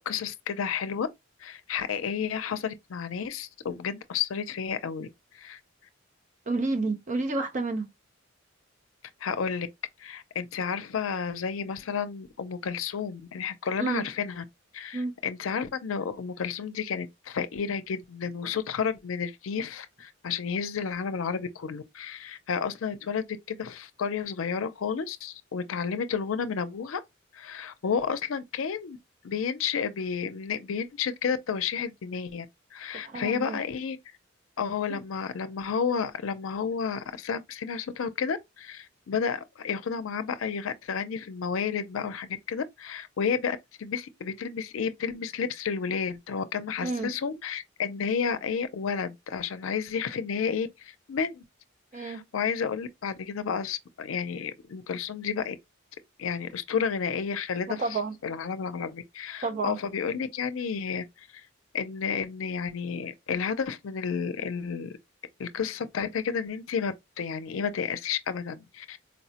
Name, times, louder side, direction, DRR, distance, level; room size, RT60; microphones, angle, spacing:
voice 1, 0.1-1.1 1.4-5.6 9.2-9.7 10.0-14.4 14.7-27.0 27.3-29.0 29.2-32.5 32.7-34.0 34.6-51.4 51.9-55.6 56.2-57.8 58.2-61.5 61.7-64.9 65.4-69.0, left 6 dB, 80° left, 0.5 m, -31 dB
voice 2, 6.5-7.9 13.8-14.1 14.9-15.2 32.9-33.6 34.9-35.0 46.8-47.1 51.9-52.2 57.7-58.2 59.4-59.8, right 3 dB, 40° right, 0.6 m, -30 dB
4.2 x 2.0 x 2.7 m
head